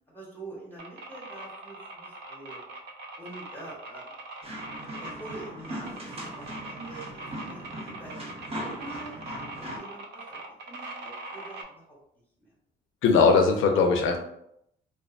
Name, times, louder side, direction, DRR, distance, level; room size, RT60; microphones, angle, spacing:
voice 1, 0.1-2.6 3.2-4.1 5.0-8.2 8.5-9.2 9.6-10.4 10.7-11.8 12.4-12.5, right 2 dB, 10° left, -6 dB, 0.8 m, -45 dB
sound 1, 0.8-11.6, right 2 dB, 60° right, 0.5 m, -42 dB
sound 2, 4.4-9.8, equal, 30° right, 0.8 m, -39 dB
voice 2, 13.0-14.2, left 4 dB, 85° left, 4 dB, 0.5 m, -20 dB
2.4 x 2.3 x 2.4 m, 0.75 s
cardioid pair, 90°, 20 cm